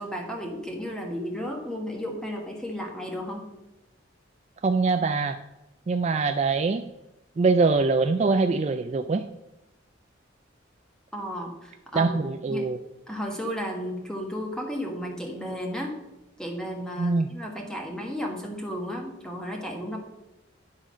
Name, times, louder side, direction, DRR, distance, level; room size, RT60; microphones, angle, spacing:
voice 1, 0.0-3.5 11.1-12.2 12.5-12.7 13.1-15.9 16.4-20.0, equal, 5° left, 1 dB, 1.3 m, -33 dB
voice 2, 4.6-5.4 5.9-6.9 7.4-9.3 11.9-12.8 17.0-17.3, right 4 dB, 35° right, 7 dB, 0.3 m, -23 dB
10.5 x 3.8 x 6.1 m, 0.96 s
head